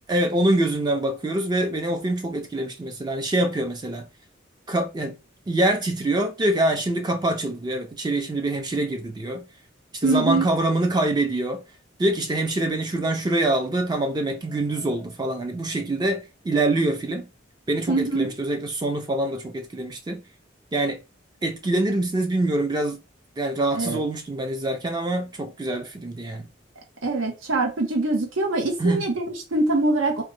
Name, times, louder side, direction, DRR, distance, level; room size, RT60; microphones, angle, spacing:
voice 1, 0.1-4.1 4.7-5.2 5.5-9.5 9.9-11.6 12.0-17.3 17.7-20.2 20.7-21.0 21.4-23.0 23.4-26.4 28.8-29.1, right 1 dB, 20° right, 0.3 m, -25 dB
voice 2, 10.0-10.5 17.9-18.3 23.7-24.0 27.0-30.2, right 2 dB, 85° right, 0.8 m, -23 dB
3.1 x 2.1 x 3.0 m
head